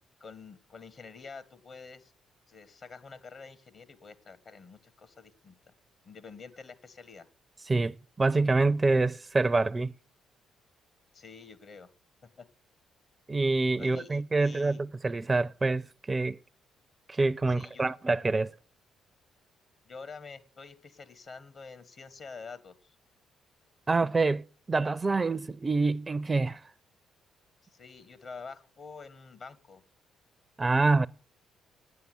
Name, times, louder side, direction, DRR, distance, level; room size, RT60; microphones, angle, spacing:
voice 1, 0.2-2.1 2.5-5.7 6.0-7.3 11.1-11.9 12.4-12.5 13.8-14.8 17.5-17.9 19.8-22.9 27.7-29.8, left 4 dB, 55° left, 1.6 m, -47 dB
voice 2, 7.7-9.9 13.3-16.4 17.1-18.5 23.9-26.6 30.6-31.1, right 3 dB, 30° right, 0.5 m, -26 dB
9.4 x 8.4 x 9.5 m
hypercardioid pair, 50°, 0 cm